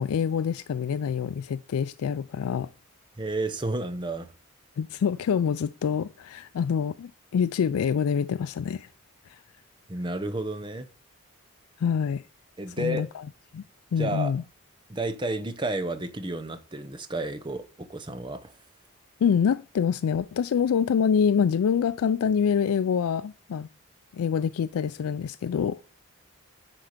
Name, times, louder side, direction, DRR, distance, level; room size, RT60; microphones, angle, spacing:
voice 1, 0.0-2.7 4.8-8.9 11.8-12.2 12.8-13.2 13.5-13.6 13.9-14.4 19.2-23.7 24.1-25.8, left 7 dB, 80° left, 0.3 m, -26 dB
voice 2, 3.2-4.3 9.9-10.9 12.6-13.1 14.0-14.3 14.9-18.5, right 2 dB, 20° right, 0.7 m, -31 dB
9.4 x 4.5 x 5.0 m
head